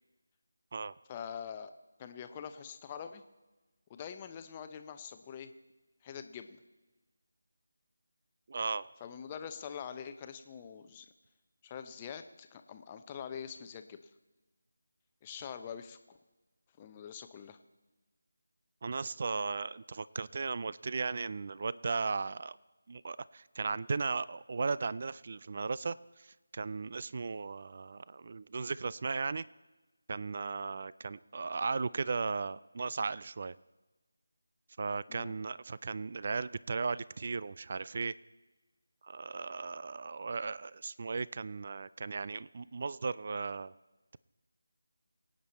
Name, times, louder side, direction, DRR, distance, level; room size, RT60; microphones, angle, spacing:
voice 1, 1.1-1.7 2.0-3.2 3.9-5.5 6.0-6.6 9.0-11.1 11.6-14.0 15.2-16.0 16.8-17.6 35.1-35.4, left 7 dB, 20° left, 8 dB, 0.7 m, -44 dB
voice 2, 8.5-8.9 18.8-22.6 22.9-26.3 26.5-29.5 30.1-33.5 34.8-38.1 39.0-43.7, right 4 dB, 40° right, 19 dB, 0.4 m, -36 dB
24.0 x 9.0 x 4.2 m, 1.2 s
figure-of-eight pair, 170°, 0 cm